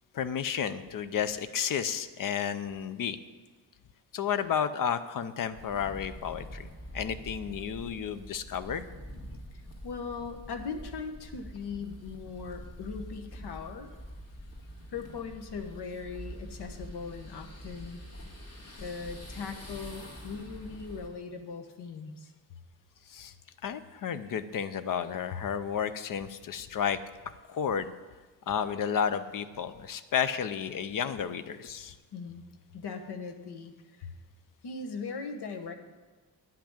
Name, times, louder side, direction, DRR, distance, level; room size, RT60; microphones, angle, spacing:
voice 1, 0.1-3.2 4.1-6.7 6.9-8.9 23.1-23.3 23.6-27.0 27.5-27.9 28.5-32.0, left 8 dB, 50° left, 13 dB, 0.6 m, -32 dB
sound 1, 5.5-21.1, equal, 35° left, 2.0 m, -45 dB
voice 2, 9.5-13.9 14.9-18.0 18.8-22.3 32.1-32.4 32.7-34.1 34.6-35.7, left 5 dB, 70° left, 7 dB, 1.2 m, -39 dB
10.0 x 5.9 x 8.7 m, 1.3 s
wide cardioid pair, 180°, 41 cm